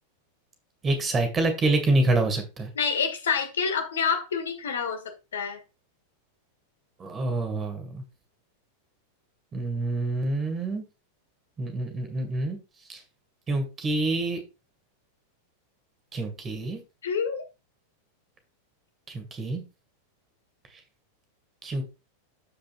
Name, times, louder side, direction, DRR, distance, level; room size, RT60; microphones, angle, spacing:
voice 1, 0.8-2.7 7.0-8.0 9.5-10.8 11.6-12.6 12.9-13.0 13.5-14.4 16.1-16.8 19.1-19.6 21.6-21.8, right 2 dB, 20° right, 2.2 m, -26 dB
voice 2, 2.7-5.0 5.3-5.6 17.0-17.4, left 6 dB, 65° left, 1.7 m, -27 dB
13.5 x 5.1 x 2.5 m
figure-of-eight pair, 90°, 0 cm